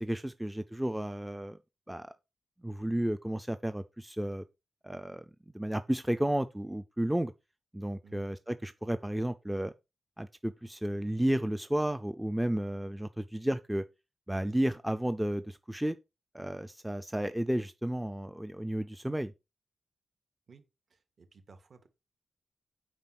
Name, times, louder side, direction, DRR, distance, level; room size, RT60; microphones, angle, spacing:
voice 1, 0.0-1.6 1.9-2.1 2.6-4.4 4.8-5.2 5.5-7.3 7.7-9.7 10.2-13.8 14.3-16.0 16.3-19.3, right 1 dB, 5° right, 0.4 m, -32 dB
voice 2, 20.9-21.9, right 4 dB, 45° right, 1.7 m, -56 dB
9.0 x 5.1 x 5.9 m
wide cardioid pair, 175°, 0 cm